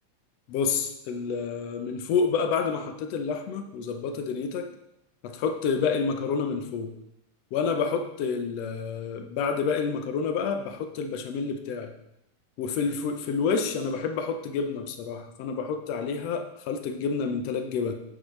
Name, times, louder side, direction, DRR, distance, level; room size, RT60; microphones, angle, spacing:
voice 1, 0.5-4.7 5.2-6.9 7.5-11.9 12.6-17.9, left 5 dB, 70° left, 6 dB, 1.6 m, -29 dB
9.2 x 9.0 x 3.2 m, 0.84 s
omnidirectional pair, 3.6 m